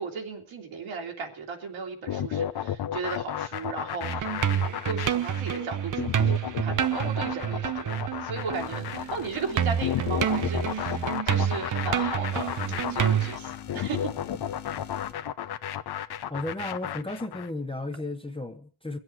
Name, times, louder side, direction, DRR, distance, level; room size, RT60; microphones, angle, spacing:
voice 1, 0.0-12.5 12.9-14.1, right 4 dB, 70° right, 3.0 m, -36 dB
sound 1, 2.1-17.5, left 10 dB, 50° left, 0.8 m, -33 dB
sound 2, 4.0-9.1 9.4-13.4, right 9 dB, 40° right, 0.9 m, -28 dB
sound 3, 8.5-11.2 12.3-15.1, left 10 dB, 80° left, 1.7 m, -44 dB
voice 2, 16.3-19.0, left 2 dB, 10° left, 1.0 m, -34 dB
22.5 x 8.0 x 4.6 m
cardioid pair, 85°, 49 cm